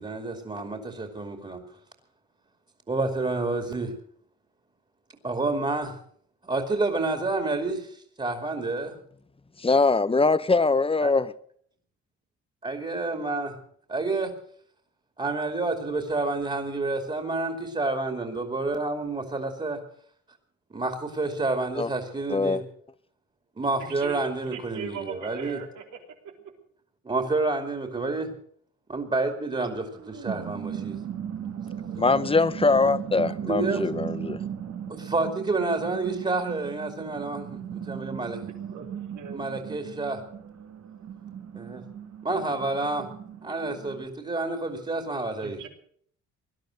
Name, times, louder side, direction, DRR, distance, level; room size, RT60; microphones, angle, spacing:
voice 1, 0.0-1.6 2.9-3.9 5.2-6.0 6.4-9.0 11.0-11.1 12.6-13.6 13.9-14.3 15.2-19.8 20.7-22.6 23.6-25.6 27.0-28.3 28.9-31.0 33.4-33.8 34.9-37.4 37.9-38.5 39.3-40.2 41.5-41.8 42.2-43.1 43.4-45.7, right 3 dB, 20° right, 5 dB, 2.6 m, -29 dB
voice 2, 9.6-11.3 21.8-21.9 22.3-22.6 32.0-34.4, left 3 dB, 20° left, 15 dB, 0.8 m, -22 dB
voice 3, 23.8-24.2 24.5-25.8 38.7-39.4 42.8-43.0 45.4-45.7, right 7 dB, 80° right, 3 dB, 3.3 m, -40 dB
sound 1, 29.8-44.0, right 9 dB, 55° right, 1.8 m, -37 dB
19.0 x 11.5 x 6.4 m, 0.62 s
cardioid pair, 90°, 30 cm